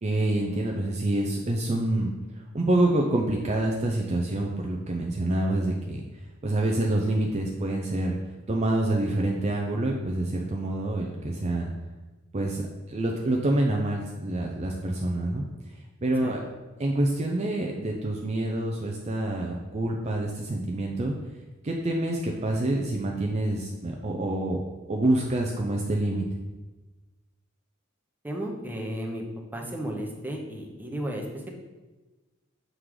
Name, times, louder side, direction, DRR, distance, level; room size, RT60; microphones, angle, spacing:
voice 1, 0.0-2.1 2.5-6.0 6.4-8.2 8.5-11.7 12.3-12.6 12.9-15.5 16.0-16.4 16.8-21.1 21.6-24.6 24.9-26.2, right 1 dB, 35° right, 0 dB, 0.5 m, -27 dB
voice 2, 28.2-29.2 29.5-31.5, right 1 dB, 10° right, 0 dB, 0.9 m, -34 dB
6.5 x 3.7 x 4.8 m, 1.2 s
head